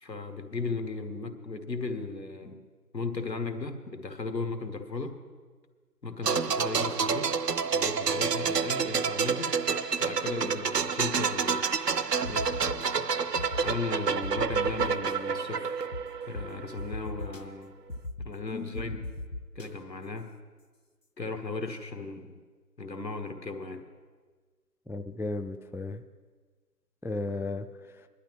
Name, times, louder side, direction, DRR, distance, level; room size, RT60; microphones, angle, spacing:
voice 1, 0.0-2.6 2.9-5.2 6.0-7.3 7.7-9.6 10.0-11.7 12.3-12.6 13.6-15.8 16.3-17.7 18.2-19.1 19.5-20.3 21.2-22.4 22.8-23.8, left 3 dB, 80° left, 6 dB, 1.5 m, -36 dB
sound 1, 6.2-16.9 17.1-17.3, right 5 dB, 70° right, 0.6 m, -29 dB
sound 2, 12.2-12.9 13.4-13.7 14.2-15.1 15.9-16.0 16.3-16.4 16.8-17.4 17.9-18.3 18.7-19.7, left 1 dB, 50° left, 0.8 m, -37 dB
voice 2, 24.9-26.0 27.0-28.1, left 2 dB, 5° right, 8 dB, 0.3 m, -35 dB
20.0 x 11.5 x 3.1 m, 1.5 s
figure-of-eight pair, 175°, 50 cm